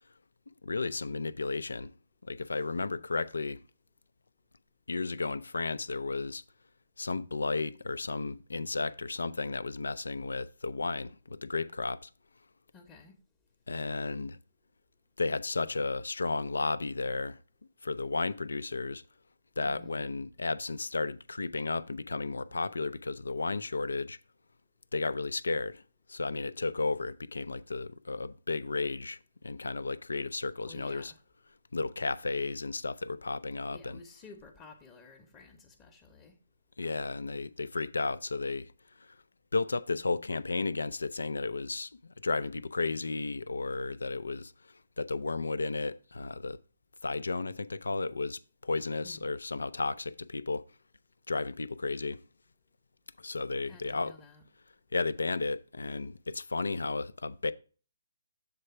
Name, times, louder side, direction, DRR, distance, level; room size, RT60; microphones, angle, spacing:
voice 1, 0.6-1.9 2.2-3.6 4.9-6.4 7.0-12.1 13.7-14.4 15.2-17.4 17.8-19.0 19.6-24.2 24.9-25.8 26.1-31.1 31.7-34.0 36.8-38.7 39.0-39.2 39.5-46.6 47.0-50.6 51.3-52.2 53.2-54.1 54.9-57.5, left 3 dB, 80° left, 0.4 m, -33 dB
voice 2, 12.7-13.2 19.6-20.0 30.6-31.2 33.7-36.3 49.0-49.2 53.7-54.4, left 3 dB, 20° left, 0.8 m, -53 dB
7.5 x 3.4 x 5.6 m
figure-of-eight pair, 145°, 0 cm